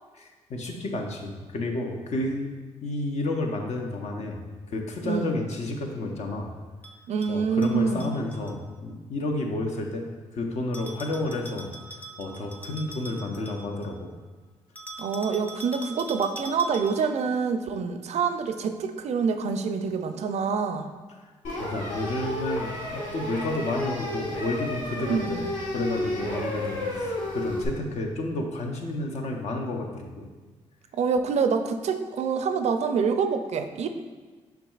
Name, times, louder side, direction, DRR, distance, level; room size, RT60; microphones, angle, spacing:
voice 1, 0.1-2.5 2.8-6.5 7.3-10.0 10.3-11.7 12.2-14.1 21.6-25.5 25.7-30.3, left 2 dB, 60° left, 1 dB, 0.7 m, -31 dB
voice 2, 5.0-5.4 7.1-8.2 15.0-20.9 25.1-25.4 30.9-33.9, right 5 dB, 60° right, 8 dB, 0.4 m, -26 dB
Bell, 6.8-8.6 10.7-14.0 14.8-17.2, right 2 dB, 15° left, 0.7 m, -43 dB
sound 1, 21.4-27.7, left 1 dB, 80° left, 1.3 m, -32 dB
5.8 x 3.5 x 2.4 m, 1.3 s
supercardioid pair, 55°, 13 cm